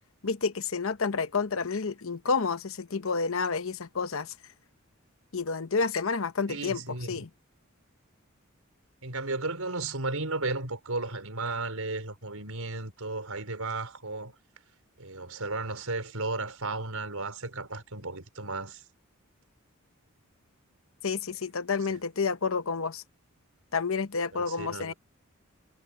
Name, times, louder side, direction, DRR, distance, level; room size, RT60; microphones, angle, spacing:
voice 1, 0.2-4.3 5.3-6.8 7.1-7.3 21.0-23.0 23.7-24.9, left 4 dB, 70° left, 0.9 m, -29 dB
voice 2, 6.5-7.3 9.0-14.3 15.0-18.8 21.9-22.0 24.3-24.9, right 3 dB, 85° right, 4.6 m, -34 dB
head